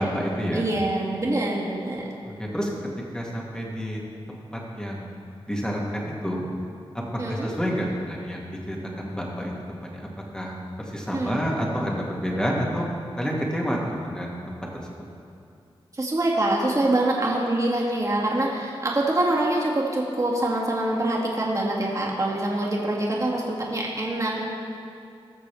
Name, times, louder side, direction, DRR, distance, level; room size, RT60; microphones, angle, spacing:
voice 1, 0.0-0.6 2.4-2.7 3.1-4.0 4.3-5.1 5.5-6.5 6.9-9.5 9.8-10.1 10.3-10.5 10.8-12.9 13.2-14.5, equal, 10° left, -3 dB, 2.2 m, -29 dB
voice 2, 0.5-2.1 7.2-7.5 11.1-11.4 15.9-24.4, right 1 dB, 35° right, -3 dB, 2.2 m, -25 dB
19.5 x 6.6 x 3.5 m, 2.5 s
cardioid pair, 60°, 10 cm